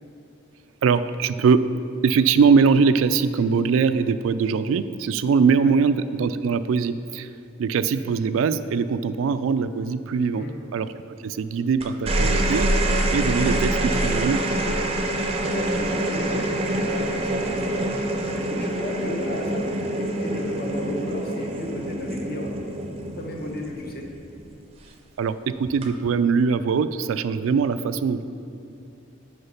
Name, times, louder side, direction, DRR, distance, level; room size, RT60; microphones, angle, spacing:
voice 1, 0.8-1.6 2.0-7.3 7.6-10.5 10.7-10.9 11.2-12.7 13.1-14.4 25.2-28.2, right 5 dB, 85° right, 13 dB, 0.3 m, -21 dB
sound 1, 11.8-24.4 25.6-26.1, right 1 dB, 30° right, 0.5 m, -25 dB
voice 2, 15.4-22.5 23.2-24.1, left 1 dB, 50° left, 1 dB, 0.9 m, -35 dB
6.6 x 4.8 x 5.6 m, 2.6 s
head